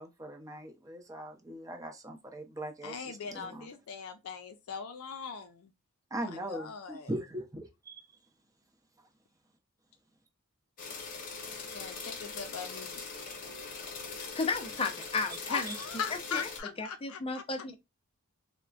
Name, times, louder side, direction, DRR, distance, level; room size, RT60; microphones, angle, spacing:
voice 1, 0.0-2.9 3.3-3.7 6.1-8.0, right 1 dB, 15° right, 0.6 m, -40 dB
voice 2, 2.8-5.7 6.2-7.1 11.7-13.0 15.5-17.4, left 6 dB, 75° left, 0.5 m, -40 dB
sound 1, 10.8-16.6, left 4 dB, 40° left, 0.9 m, -42 dB
voice 3, 14.2-15.7 16.3-16.4 16.8-17.8, left 4 dB, 25° left, 0.5 m, -33 dB
3.5 x 2.1 x 2.3 m
head